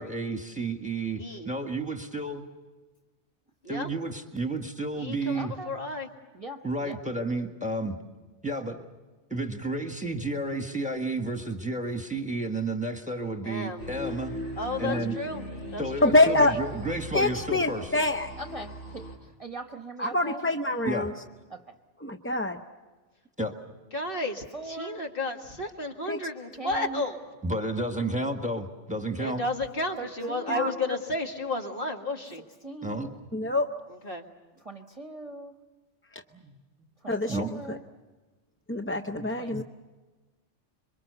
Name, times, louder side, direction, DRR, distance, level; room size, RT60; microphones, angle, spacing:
voice 1, 0.0-2.5 3.7-5.5 6.6-8.0 8.4-8.8 9.3-14.4 14.8-15.2 15.8-17.9 20.9-21.1 23.4-23.6 27.4-29.4 32.8-33.1 36.3-36.6 37.3-37.5 39.1-39.3, right 2 dB, 5° right, 5 dB, 1.7 m, -31 dB
voice 2, 1.2-1.5 3.6-3.9 4.9-6.1 13.4-13.9 14.6-15.4 15.7-16.6 23.9-27.2 29.2-32.4 33.9-34.2, left 2 dB, 45° left, 2 dB, 2.2 m, -33 dB
voice 3, 5.3-5.7 6.3-7.0 14.8-15.0 18.4-19.0 19.4-20.4 21.5-21.6 24.5-25.0 26.6-27.0 30.0-30.8 32.6-33.1 34.6-35.5 37.0-37.8 39.4-39.6, right 1 dB, 30° right, 6 dB, 1.1 m, -40 dB
sound 1, 13.8-19.2, equal, 80° left, 4.7 m, -39 dB
voice 4, 16.0-16.5 17.1-18.3 20.0-21.1 22.0-22.6 26.1-26.2 30.5-30.7 33.3-33.7 36.1-36.2 37.1-37.4 37.7-37.8 38.7-39.6, left 2 dB, 15° left, 4 dB, 0.6 m, -25 dB
26.5 x 23.5 x 6.9 m, 1.3 s
omnidirectional pair, 1.3 m